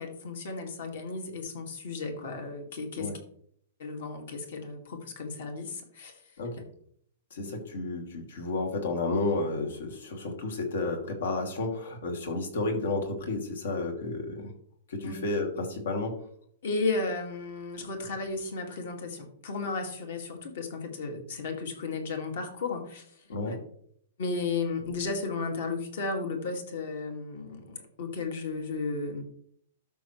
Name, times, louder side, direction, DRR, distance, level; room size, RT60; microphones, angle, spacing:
voice 1, 0.0-3.1 3.8-6.2 15.0-15.2 16.6-23.1 23.5-23.6 24.2-29.2, left 3 dB, 55° left, 4 dB, 2.2 m, -34 dB
voice 2, 7.3-14.5 14.9-16.1 23.3-23.6, left 2 dB, 75° left, 3 dB, 2.6 m, -31 dB
13.0 x 6.0 x 3.3 m, 0.64 s
hypercardioid pair, 175°, 0 cm